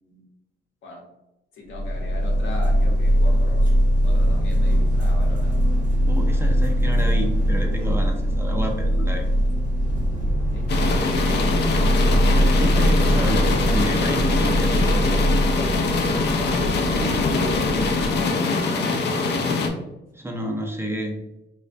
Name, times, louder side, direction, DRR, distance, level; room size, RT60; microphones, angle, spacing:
voice 1, 1.5-3.7 4.0-5.5 10.5-11.3 16.8-18.9, left 1 dB, 75° left, -1 dB, 0.8 m, -37 dB
sound 1, 1.7-18.3, equal, 40° right, 0.7 m, -21 dB
voice 2, 6.1-9.3 12.3-15.2 20.1-21.2, equal, 10° right, 1 dB, 0.3 m, -30 dB
sound 2, 10.7-19.7, left 3 dB, 60° left, 0.4 m, -23 dB
2.4 x 2.1 x 2.5 m, 0.94 s
cardioid pair, 90°, 20 cm